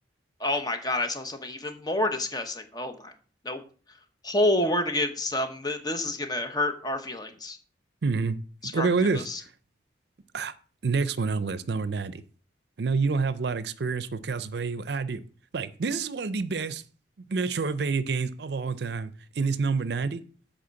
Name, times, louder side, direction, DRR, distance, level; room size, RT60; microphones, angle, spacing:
voice 1, 0.4-3.1 3.4-3.6 4.2-7.6 8.6-8.9 9.1-9.4, left 1 dB, 20° left, 7 dB, 0.9 m, -28 dB
voice 2, 8.0-8.4 8.6-9.3 10.3-10.5 10.8-12.2 12.8-15.2 15.5-16.8 17.3-20.2, right 4 dB, 65° right, 15 dB, 0.5 m, -28 dB
7.8 x 4.3 x 6.9 m, 0.42 s
head